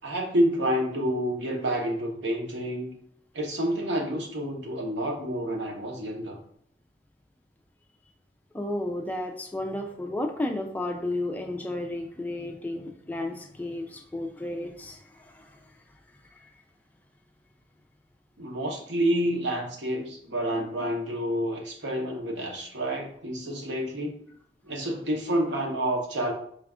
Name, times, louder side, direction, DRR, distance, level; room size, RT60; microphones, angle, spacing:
voice 1, 0.0-2.9 3.3-6.4 18.4-24.2 24.6-26.3, equal, 85° right, 1 dB, 0.9 m, -28 dB
voice 2, 8.5-15.6 16.3-16.5, left 1 dB, 10° left, 3 dB, 0.3 m, -33 dB
4.8 x 2.4 x 3.5 m, 0.65 s
head